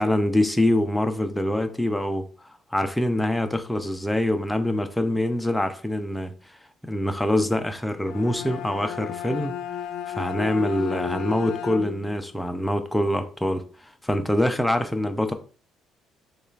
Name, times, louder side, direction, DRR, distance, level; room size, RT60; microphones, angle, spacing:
voice 1, 0.0-6.6 6.8-9.6 10.1-15.3, left 1 dB, 5° left, 0.4 m, -25 dB
Bowed string instrument, 7.9-12.2, left 10 dB, 80° left, 0.3 m, -33 dB
6.1 x 2.4 x 2.3 m
cardioid pair, 150°, 0 cm